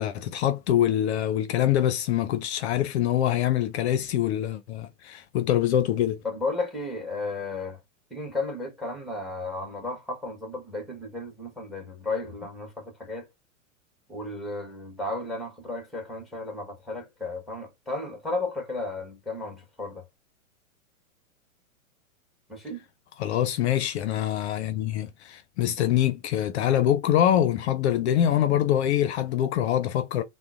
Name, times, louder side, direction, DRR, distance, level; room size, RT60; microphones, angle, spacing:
voice 1, 0.0-6.2 23.2-30.2, left 11 dB, 55° left, 0.5 m, -24 dB
voice 2, 6.2-7.8 8.1-13.3 14.1-20.0 22.5-22.8, left 2 dB, ahead, 1.0 m, -34 dB
3.7 x 2.1 x 2.3 m
hypercardioid pair, 125°, 40 cm